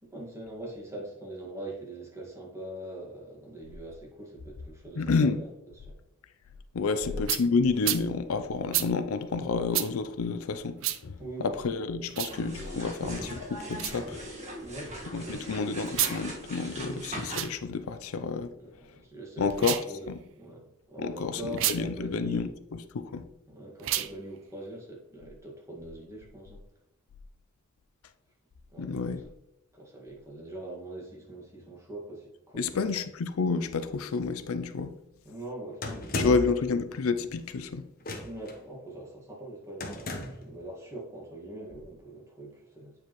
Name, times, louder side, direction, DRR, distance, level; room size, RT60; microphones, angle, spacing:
voice 1, 0.0-5.5 5.8-6.0 6.8-7.2 11.2-11.7 14.6-15.7 16.7-17.0 18.5-20.1 20.4-22.5 23.5-26.6 28.7-29.2 29.7-32.9 35.2-36.6 38.2-42.9, right 1 dB, 15° right, 1.8 m, -43 dB
voice 2, 5.0-5.4 6.7-14.2 15.1-18.5 19.4-19.8 21.0-22.5 22.9-23.2 28.8-29.2 32.5-34.9 36.1-37.9, left 4 dB, 80° left, 0.5 m, -29 dB
sound 1, 7.3-7.4 7.8-8.0 8.7-8.9 9.7-9.9 10.8-11.0 12.1-12.4 13.7-14.0 15.9-16.2 17.2-17.5 19.5-19.9 21.5-21.8 23.8-24.1, right 13 dB, 65° right, 0.4 m, -29 dB
sound 2, 12.3-17.4, right 1 dB, 35° right, 1.6 m, -40 dB
sound 3, 35.8-36.6 38.0-38.5 39.8-40.5, left 2 dB, 45° left, 1.0 m, -34 dB
8.6 x 4.7 x 3.1 m
head